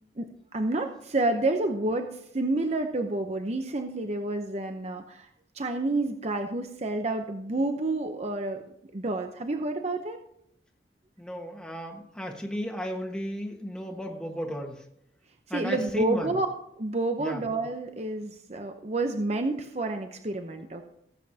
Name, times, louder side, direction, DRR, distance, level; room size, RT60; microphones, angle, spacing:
voice 1, 0.2-5.3 5.5-8.6 8.9-10.2 15.5-16.5 16.8-20.9, right 2 dB, 35° right, 6 dB, 0.7 m, -29 dB
voice 2, 11.2-14.8 15.5-16.3 17.2-17.4, equal, 5° left, 0 dB, 1.4 m, -34 dB
17.5 x 8.2 x 2.8 m, 0.75 s
head